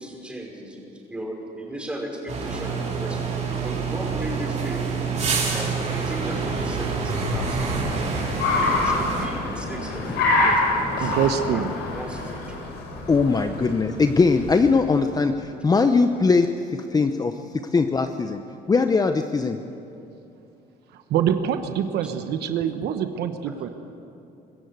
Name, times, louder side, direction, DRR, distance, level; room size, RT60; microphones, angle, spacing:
voice 1, 0.0-4.9 5.5-7.7 8.6-11.2 11.5-12.6, right 1 dB, 5° right, -1 dB, 5.6 m, -36 dB
sound 1, 2.3-9.3, right 4 dB, 45° right, 5.0 m, -27 dB
Car, 4.8-15.1, left 2 dB, 80° left, 5.9 m, -27 dB
voice 2, 11.0-11.7 20.9-23.7, right 9 dB, 75° right, 8 dB, 1.1 m, -25 dB
voice 3, 13.1-18.4 18.7-19.6, left 4 dB, 20° left, 7 dB, 0.8 m, -21 dB
25.0 x 15.0 x 8.0 m, 2.8 s
cardioid pair, 110°, 17 cm